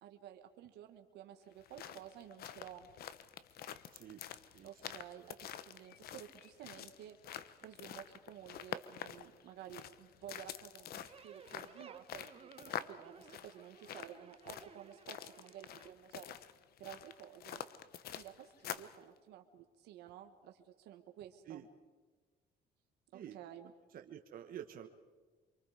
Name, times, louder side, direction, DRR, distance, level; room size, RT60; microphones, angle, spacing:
voice 1, 0.0-2.9 4.6-7.2 7.6-16.3 16.8-17.6 18.1-21.6 23.1-23.7, right 11 dB, 80° right, 5 dB, 1.6 m, -53 dB
sound 1, 1.5-19.0, left 10 dB, 65° left, 1.1 m, -47 dB
sound 2, 11.0-15.9, right 7 dB, 35° right, 1.1 m, -58 dB
voice 2, 23.9-24.9, right 10 dB, 60° right, 5 dB, 1.3 m, -49 dB
26.5 x 24.0 x 5.1 m, 1.3 s
cardioid pair, 110°, 17 cm